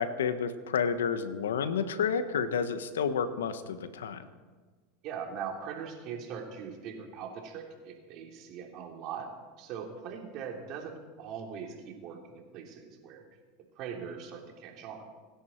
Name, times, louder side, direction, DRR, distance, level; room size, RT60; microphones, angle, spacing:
voice 1, 0.0-4.3, left 6 dB, 90° left, 11 dB, 1.2 m, -30 dB
voice 2, 5.0-9.3 9.6-13.2 13.7-15.0, right 7 dB, 50° right, 1 dB, 3.3 m, -41 dB
26.5 x 10.5 x 4.5 m, 1.4 s
hypercardioid pair, 105°, 0 cm